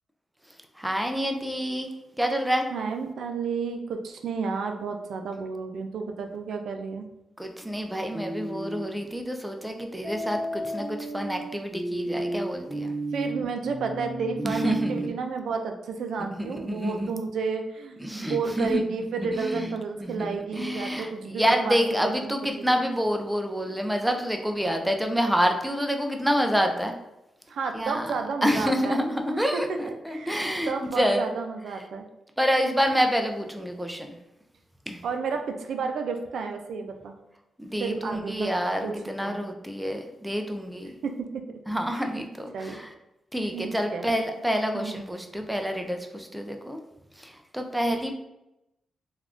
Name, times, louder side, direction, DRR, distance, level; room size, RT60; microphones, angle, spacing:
voice 1, 0.8-2.7 7.4-12.9 14.4-15.1 16.4-17.2 18.0-18.8 19.2-19.8 20.0-26.9 27.7-28.1 28.4-31.3 32.4-34.2 34.9-35.0 37.6-41.0 41.7-42.9 43.3-46.8 47.2-48.1, equal, 5° right, 4 dB, 0.3 m, -28 dB
voice 2, 2.7-7.1 13.1-22.7 27.5-32.0 35.0-37.2 37.8-38.5 38.8-39.5 41.0-41.4 41.9-42.2 42.5-42.8 43.5-44.1 44.7-45.0, right 5 dB, 80° right, 5 dB, 0.3 m, -32 dB
sound 1, 8.1-8.9 10.0-15.1, right 1 dB, 25° right, 0.8 m, -32 dB
3.4 x 2.3 x 2.4 m, 0.89 s
cardioid pair, 115°, 0 cm